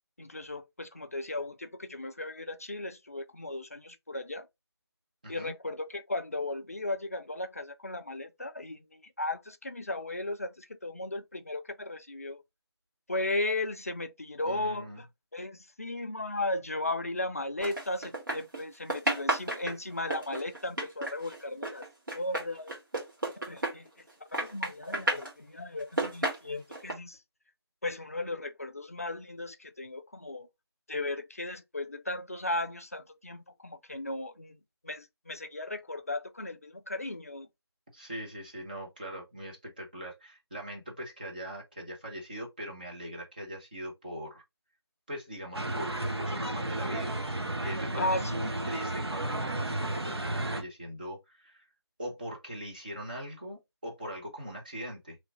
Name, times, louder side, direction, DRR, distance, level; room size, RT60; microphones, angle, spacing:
voice 1, 0.2-4.5 5.3-12.4 13.1-15.1 15.3-21.9 22.1-22.7 23.4-23.9 24.3-27.2 27.8-30.5 30.9-34.6 34.8-37.5 48.0-48.4, left 2 dB, 35° left, 0.4 m, -36 dB
voice 2, 5.2-5.5 14.4-15.0 37.9-44.4 45.1-47.2 47.6-51.6 52.0-55.2, equal, 20° right, 0.7 m, -41 dB
sound 1, 17.6-18.6 18.9-24.1 24.3-25.3 25.8-26.9, right 1 dB, 50° right, 1.4 m, -32 dB
sound 2, 45.5-50.6, right 1 dB, 70° right, 0.8 m, -33 dB
3.1 x 2.3 x 4.1 m
figure-of-eight pair, 160°, 14 cm